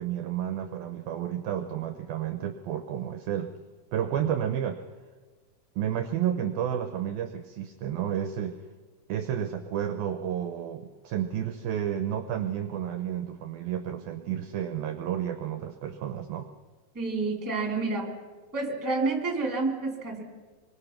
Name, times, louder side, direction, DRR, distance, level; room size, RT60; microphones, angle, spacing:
voice 1, 0.0-3.5 3.9-4.8 5.8-8.6 9.1-16.5, right 10 dB, 75° right, 8 dB, 2.2 m, -31 dB
voice 2, 16.9-18.1 18.5-20.2, right 3 dB, 5° right, 2 dB, 2.0 m, -29 dB
28.0 x 23.0 x 5.9 m, 1.4 s
omnidirectional pair, 5.2 m